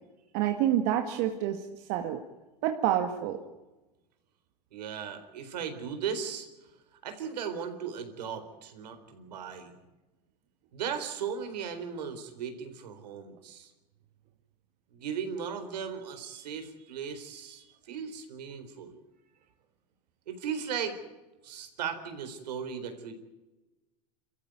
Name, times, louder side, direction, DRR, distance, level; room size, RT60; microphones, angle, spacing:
voice 1, 0.3-2.2 2.6-3.4, right 11 dB, 60° right, 5 dB, 2.1 m, -28 dB
voice 2, 4.7-6.5 7.0-9.8 10.7-13.7 14.9-19.0 20.3-21.0 21.4-23.1, right 7 dB, 85° right, 7 dB, 4.2 m, -37 dB
27.5 x 14.5 x 9.3 m, 1.1 s
hypercardioid pair, 100°, 21 cm